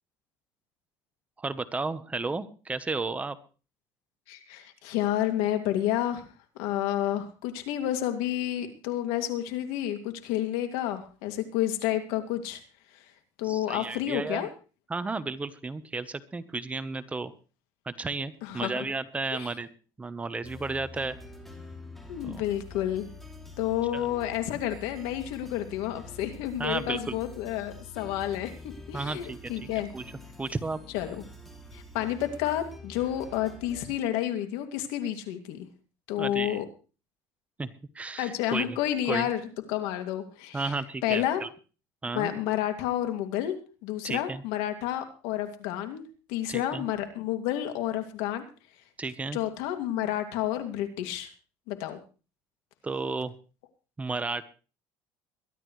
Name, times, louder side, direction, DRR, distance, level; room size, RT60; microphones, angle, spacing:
voice 1, 1.4-3.4 13.4-14.5 14.9-17.3 17.8-19.7 20.0-21.2 22.2-22.4 23.9-24.0 26.6-27.2 28.9-29.7 29.9-30.0 30.4-30.8 36.2-36.6 37.6-37.7 37.9-38.8 39.1-39.3 40.5-41.5 42.0-42.3 44.0-44.4 46.5-46.8 49.0-49.4 52.8-53.3 54.0-54.4, right 3 dB, 15° right, 12 dB, 1.0 m, -33 dB
voice 2, 4.3-12.6 12.9-13.0 13.4-14.5 18.4-18.8 19.3-19.5 22.1-23.1 23.6-28.5 28.9-29.9 30.9-31.2 31.7-35.7 36.1-36.6 38.2-39.4 39.7-40.7 41.0-41.4 42.1-43.6 43.8-46.0 46.3-48.5 49.3-51.3 51.7-52.0, left 12 dB, 85° left, 7 dB, 2.5 m, -30 dB
sound 1, 20.4-33.9, left 3 dB, ahead, 2.8 m, -46 dB
22.0 x 12.5 x 3.2 m, 0.35 s
cardioid pair, 125°, 9 cm